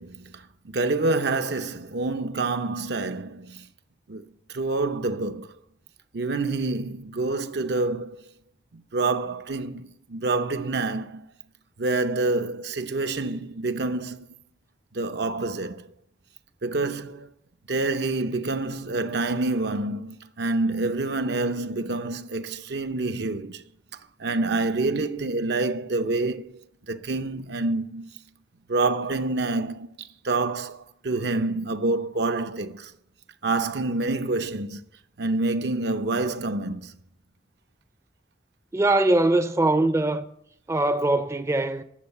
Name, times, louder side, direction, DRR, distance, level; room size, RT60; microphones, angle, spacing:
voice 1, 0.0-3.7 4.1-5.5 6.1-8.2 8.7-11.3 11.8-14.3 14.9-15.9 16.6-17.3 17.7-23.6 24.2-28.1 28.7-32.9 33.4-34.8 35.2-36.9, right 3 dB, 70° right, 0.8 m, -27 dB
voice 2, 38.7-40.3 40.7-41.8, right 2 dB, 15° right, 0.5 m, -22 dB
12.5 x 8.1 x 6.7 m
head